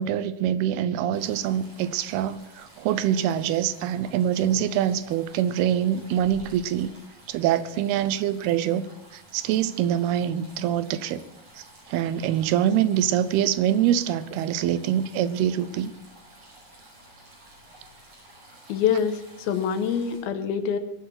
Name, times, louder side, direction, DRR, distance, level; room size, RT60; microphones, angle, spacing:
voice 1, 0.0-6.9 7.3-8.9 9.1-11.2 11.9-15.9, right 10 dB, 90° right, 14 dB, 2.8 m, -24 dB
sound 1, 1.1-20.2, right 1 dB, 50° right, 6.3 m, -51 dB
voice 2, 18.7-20.8, left 7 dB, 80° left, 10 dB, 2.8 m, -25 dB
22.5 x 8.1 x 5.9 m, 0.87 s
omnidirectional pair, 4.4 m